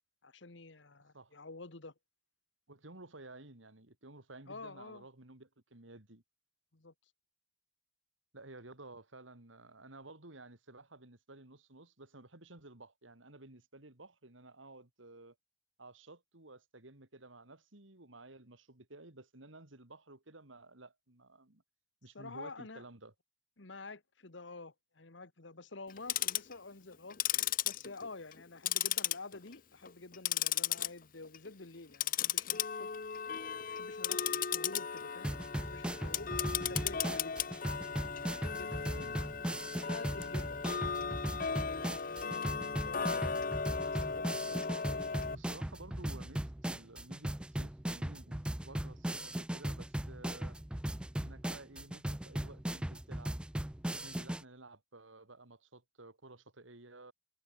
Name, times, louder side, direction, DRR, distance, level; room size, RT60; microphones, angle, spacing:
voice 1, 0.2-1.9 4.5-5.0 6.7-6.9 22.1-22.8 23.6-27.2 27.6-32.9 33.5-35.3 35.7-36.3 36.7-37.3 38.3-39.2 39.8-40.6 40.9-41.2 41.6-45.1, left 3 dB, 75° left, 1.6 m, -49 dB
voice 2, 2.7-6.2 8.3-15.3 15.8-21.6 22.0-23.1 36.5-36.8 38.9-39.2 43.8-43.9 45.3-50.6 51.1-53.4 54.0-57.1, right 2 dB, 90° right, 3.2 m, -54 dB
Tick-tock, 25.9-26.5 27.1-28.4 28.7-29.5 29.9-30.9 31.2-31.5 31.9-45.3, left 8 dB, 45° left, 0.8 m, -36 dB
sound 1, 35.2-54.4, right 1 dB, 5° right, 0.3 m, -38 dB
head